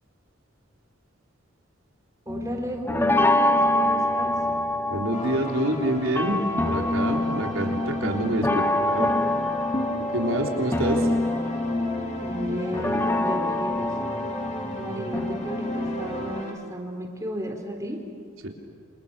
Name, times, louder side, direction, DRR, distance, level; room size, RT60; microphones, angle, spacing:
sound 1, 2.3-16.4, left 1 dB, 10° left, 0.9 m, -26 dB
voice 1, 2.3-4.3 12.2-14.0 14.7-18.0, equal, 15° right, 2 dB, 3.6 m, -34 dB
voice 2, 4.9-9.1 10.0-11.1 18.4-18.5, right 1 dB, 80° right, 2 dB, 3.7 m, -27 dB
sound 2, 5.1-16.5, equal, 35° left, 3.2 m, -35 dB
28.5 x 26.5 x 6.8 m, 2.2 s
head